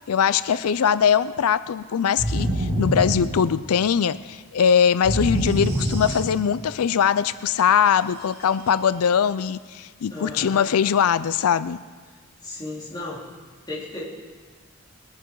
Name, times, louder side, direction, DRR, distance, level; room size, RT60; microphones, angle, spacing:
voice 1, 0.1-11.8, left 7 dB, 85° left, 15 dB, 0.4 m, -21 dB
sound 1, 2.2-3.9 5.0-6.7, right 1 dB, 80° right, 4.1 m, -26 dB
voice 2, 10.1-10.7 12.4-13.2 13.7-14.1, left 2 dB, 20° left, -6 dB, 3.4 m, -34 dB
20.5 x 11.0 x 4.7 m, 1.4 s
head